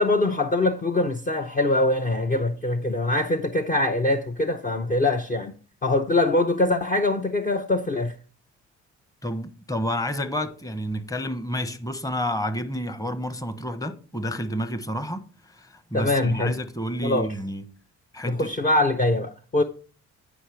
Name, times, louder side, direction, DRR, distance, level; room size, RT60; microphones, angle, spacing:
voice 1, 0.0-5.5 5.8-8.1 15.9-16.5 17.0-17.3 18.3-19.6, left 2 dB, 25° left, 0.7 m, -23 dB
voice 2, 9.2-17.6 18.1-18.5, equal, 10° left, 1.0 m, -30 dB
10.0 x 4.9 x 4.5 m
cardioid pair, 90°, 30 cm